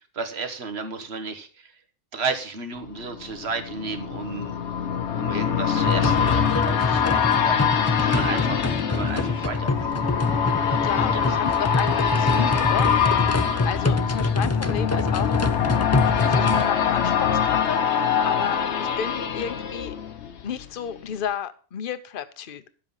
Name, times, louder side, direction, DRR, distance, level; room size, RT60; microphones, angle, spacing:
voice 1, 0.0-1.7 2.1-4.6 5.1-9.9 11.0-11.3, right 4 dB, 60° right, 6 dB, 1.6 m, -33 dB
sound 1, 2.9-20.6 21.1-21.2, left 7 dB, 65° left, 1.2 m, -24 dB
sound 2, 5.8-16.7, left 3 dB, 20° left, 0.4 m, -25 dB
voice 2, 10.5-13.4 13.6-15.3 16.2-19.9 20.4-22.6, left 8 dB, 50° left, 12 dB, 0.9 m, -32 dB
11.0 x 7.8 x 5.5 m, 0.39 s
omnidirectional pair, 1.2 m